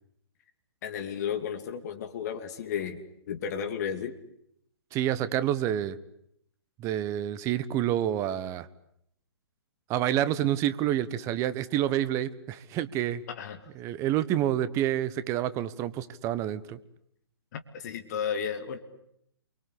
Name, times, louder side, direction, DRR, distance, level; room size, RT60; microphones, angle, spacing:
voice 1, 0.8-4.2 13.3-13.7 17.5-18.8, left 7 dB, 40° left, 7 dB, 2.7 m, -33 dB
voice 2, 4.9-6.0 6.8-8.7 9.9-13.2 13.7-16.8, right 12 dB, 20° right, 15 dB, 1.2 m, -28 dB
28.5 x 24.0 x 8.5 m, 0.73 s
figure-of-eight pair, 130°, 13 cm